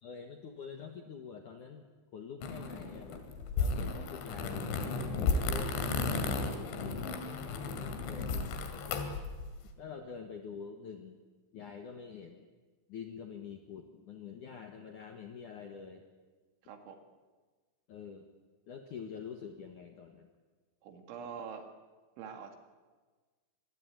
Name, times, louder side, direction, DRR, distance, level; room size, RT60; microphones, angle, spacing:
voice 1, 0.0-3.2 3.6-4.7 5.2-9.2 9.8-11.2 11.5-12.5 12.9-16.0 17.9-18.3 18.7-20.3, left 6 dB, 60° left, 4 dB, 2.3 m, -46 dB
sound 1, 2.4-9.6, left 4 dB, 80° left, 4.5 m, -34 dB
voice 2, 16.6-17.0 20.8-21.7 22.2-22.6, right 6 dB, 85° right, 5 dB, 4.4 m, -44 dB
26.0 x 21.0 x 9.1 m, 1.4 s
omnidirectional pair, 5.3 m